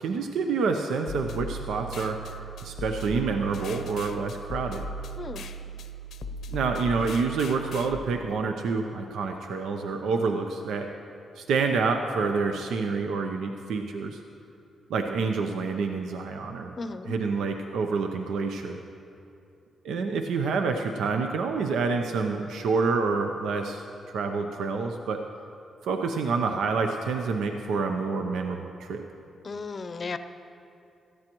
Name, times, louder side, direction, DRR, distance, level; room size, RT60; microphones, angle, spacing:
voice 1, 0.0-2.2 2.6-4.8 6.5-10.9 11.4-14.2 14.9-16.7 17.1-18.8 19.8-25.2 25.8-29.0, right 4 dB, 85° right, 4 dB, 0.6 m, -28 dB
sound 1, 1.1-7.9, right 1 dB, 75° left, 0.6 m, -37 dB
voice 2, 5.2-5.5 16.8-17.1 29.4-30.2, left 4 dB, 40° left, 10 dB, 0.6 m, -35 dB
17.5 x 13.5 x 3.0 m, 2.6 s
cardioid pair, 90°, 0 cm